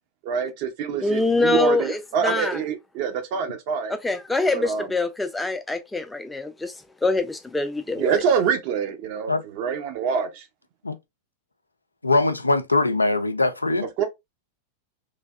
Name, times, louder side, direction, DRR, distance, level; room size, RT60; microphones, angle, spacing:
voice 1, 0.2-3.9 4.5-4.9 8.0-10.5 14.0-14.1, right 7 dB, 45° right, 0.7 m, -25 dB
voice 2, 1.0-2.6 4.0-6.8 7.0-8.1, left 2 dB, 5° left, 0.5 m, -24 dB
voice 3, 12.0-13.9, left 2 dB, 80° left, 0.3 m, -21 dB
3.2 x 2.6 x 2.3 m
figure-of-eight pair, 90°, 0 cm